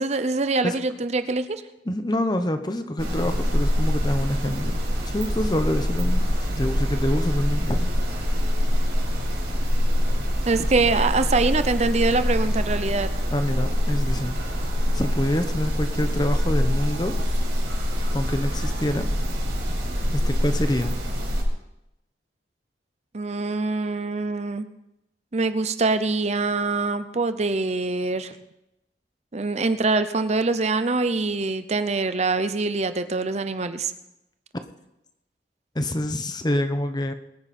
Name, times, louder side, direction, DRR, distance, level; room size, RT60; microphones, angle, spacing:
voice 1, 0.0-1.5 10.5-13.1 23.1-24.7 25.3-28.3 29.3-33.9, right 3 dB, 40° right, 10 dB, 0.7 m, -24 dB
voice 2, 1.8-7.9 13.3-14.4 14.9-17.1 18.1-19.1 20.1-20.9 35.7-37.1, left 1 dB, 25° left, 8 dB, 1.0 m, -26 dB
sound 1, 3.0-21.4, equal, 75° right, 4.5 m, -24 dB
22.0 x 9.6 x 4.3 m, 0.88 s
head